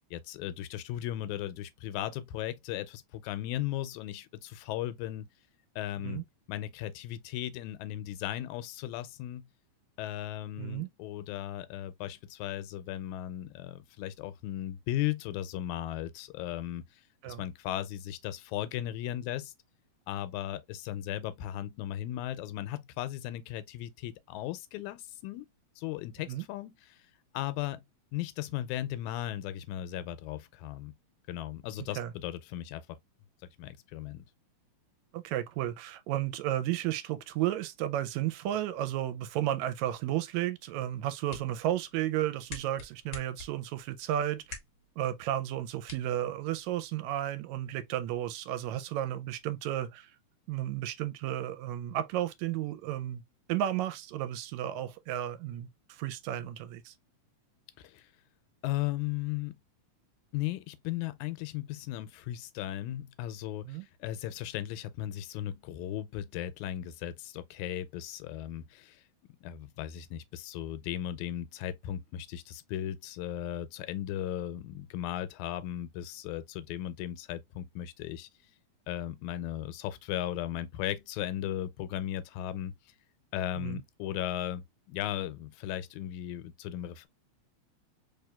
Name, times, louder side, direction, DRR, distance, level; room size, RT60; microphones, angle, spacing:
voice 1, 0.1-5.3 5.8-6.2 6.5-9.5 10.0-16.8 17.3-19.5 20.1-25.5 25.8-27.0 27.3-27.8 28.1-30.9 31.3-32.8 33.6-34.2 57.8-58.1 58.6-59.6 60.3-69.0 69.4-78.3 78.9-82.7 83.3-87.1, left 12 dB, 85° left, 2.0 m, -36 dB
voice 2, 10.6-10.9 17.2-17.4 26.3-26.5 32.0-32.1 35.1-44.6 45.0-50.1 50.5-53.2 53.5-56.9 63.7-63.9 83.6-83.8, right 12 dB, 80° right, 1.8 m, -33 dB
sound 1, 40.9-46.9, left 3 dB, 70° left, 0.9 m, -50 dB
4.1 x 3.2 x 2.2 m
omnidirectional pair, 3.3 m